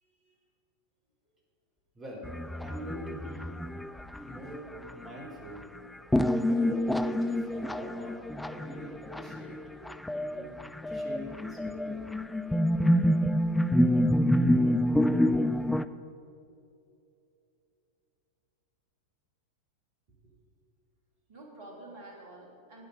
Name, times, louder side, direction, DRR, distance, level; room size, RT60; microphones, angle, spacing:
voice 1, 0.0-0.4 9.8-9.9 21.3-22.9, right 2 dB, 50° right, -2 dB, 3.2 m, -49 dB
voice 2, 1.9-2.3 2.6-3.5 4.2-5.7 6.5-9.6 10.3-10.6 10.8-12.1, equal, 20° right, -2 dB, 3.2 m, -43 dB
sound 1, 2.2-5.1 6.1-15.8, equal, 5° left, 0.3 m, -27 dB
12.0 x 8.9 x 5.5 m, 2.7 s
figure-of-eight pair, 90°, 0 cm